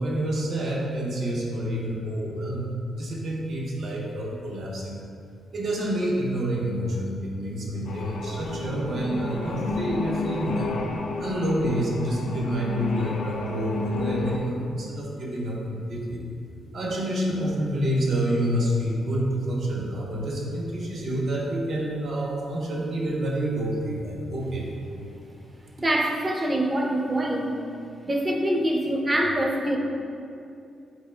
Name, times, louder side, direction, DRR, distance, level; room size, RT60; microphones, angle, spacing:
voice 1, 0.0-2.6 2.9-5.0 5.5-10.8 11.2-16.2 16.7-24.7, right 1 dB, 65° right, -3 dB, 0.8 m, -28 dB
sound 1, 7.8-14.4, left 3 dB, 80° left, 0.5 m, -31 dB
voice 2, 25.8-27.6 28.0-29.8, right 1 dB, 20° right, 1 dB, 0.5 m, -24 dB
5.6 x 4.3 x 2.2 m, 2.6 s
cardioid pair, 100°, 0 cm